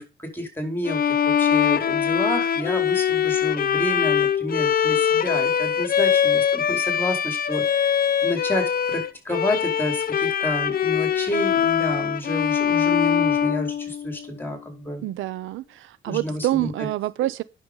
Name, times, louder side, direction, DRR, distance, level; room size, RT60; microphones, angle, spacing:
voice 1, 0.0-7.9 8.2-15.1 16.0-16.9, left 1 dB, 10° left, 4.7 m, -30 dB
Bowed string instrument, 0.9-14.3, left 8 dB, 50° left, 0.8 m, -22 dB
voice 2, 15.0-17.4, right 15 dB, 85° right, 0.7 m, -27 dB
9.9 x 6.9 x 5.2 m
cardioid pair, 90°, 20 cm